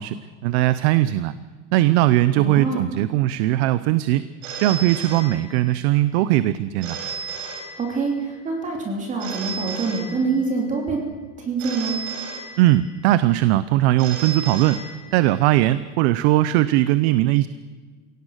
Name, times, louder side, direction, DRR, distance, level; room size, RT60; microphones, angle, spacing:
voice 1, 0.0-1.4 1.7-4.2 4.6-7.0 12.6-17.5, right 15 dB, 60° right, 15 dB, 0.8 m, -19 dB
voice 2, 2.4-2.8 7.8-11.0 11.4-12.0, right 4 dB, 20° right, 1 dB, 3.2 m, -25 dB
Telephone, 4.4-5.9 6.8-8.3 9.2-10.7 11.6-13.1 14.0-15.5, right 5 dB, 80° right, 5.1 m, -34 dB
30.0 x 17.5 x 6.5 m, 1.5 s
supercardioid pair, 165°, 37 cm